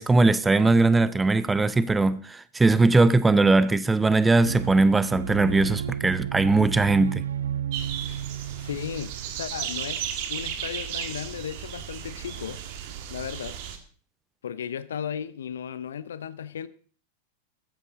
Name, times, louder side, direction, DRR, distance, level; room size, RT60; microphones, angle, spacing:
voice 1, 0.0-7.2, right 3 dB, 10° right, 0.7 m, -20 dB
sound 1, 4.4-9.7, right 9 dB, 70° right, 0.6 m, -33 dB
sound 2, 7.7-13.8, right 9 dB, 50° right, 1.9 m, -35 dB
voice 2, 8.6-12.6 13.1-13.6 14.4-16.7, left 8 dB, 65° left, 0.8 m, -35 dB
15.0 x 13.0 x 4.0 m
figure-of-eight pair, 90°, 0 cm